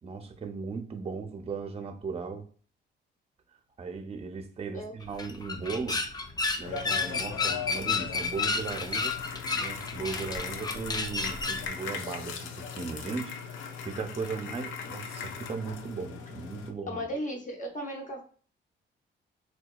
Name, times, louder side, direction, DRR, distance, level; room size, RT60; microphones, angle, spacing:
voice 1, 0.0-2.5 3.8-6.0 6.6-9.2 9.5-17.1, right 5 dB, 30° right, 0.5 m, -37 dB
sound 1, 5.0-11.7, left 4 dB, 20° left, 0.3 m, -31 dB
sound 2, 6.6-16.7, left 6 dB, 80° left, 0.5 m, -39 dB
voice 2, 16.9-18.2, equal, 40° left, 0.8 m, -35 dB
2.7 x 2.3 x 2.3 m
cardioid pair, 90°, 20 cm